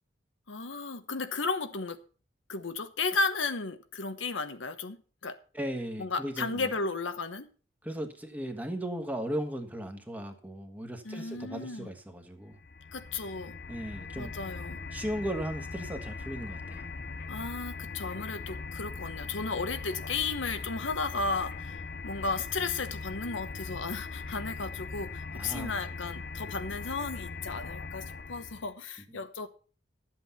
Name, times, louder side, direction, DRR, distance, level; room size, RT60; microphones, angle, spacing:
voice 1, 0.5-2.0 2.5-5.4 6.0-7.5 11.0-11.9 12.9-13.5 14.1-14.8 17.3-29.5, left 4 dB, 85° left, 1.1 m, -34 dB
voice 2, 5.5-6.7 7.8-12.6 13.7-14.3 14.9-16.9 25.3-25.8, equal, 10° right, 1.4 m, -36 dB
sound 1, 12.5-28.7, left 4 dB, 50° left, 0.6 m, -40 dB
12.0 x 7.9 x 5.7 m
head